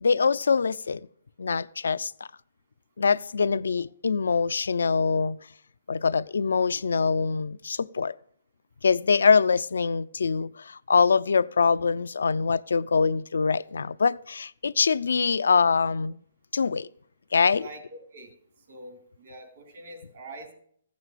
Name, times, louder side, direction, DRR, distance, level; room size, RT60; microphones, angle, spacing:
voice 1, 0.0-1.0 1.4-2.1 3.0-5.4 5.9-8.1 8.8-16.2 16.5-16.9 17.3-17.7, left 5 dB, 85° left, 0.4 m, -24 dB
voice 2, 17.5-18.3 18.7-20.5, right 1 dB, 60° right, 3.2 m, -44 dB
15.0 x 6.2 x 8.2 m
hypercardioid pair, 150°, 0 cm